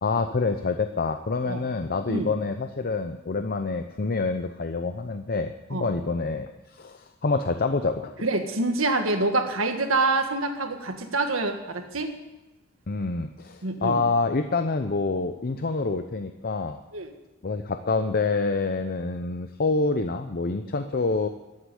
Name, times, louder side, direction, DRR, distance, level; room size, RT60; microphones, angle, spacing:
voice 1, 0.0-8.1 12.9-16.8 17.4-21.3, left 3 dB, 45° left, 7 dB, 0.7 m, -27 dB
voice 2, 8.2-12.1 13.6-14.0 16.9-17.1, right 2 dB, 70° right, 6 dB, 1.7 m, -26 dB
14.0 x 8.2 x 9.9 m, 1.1 s
head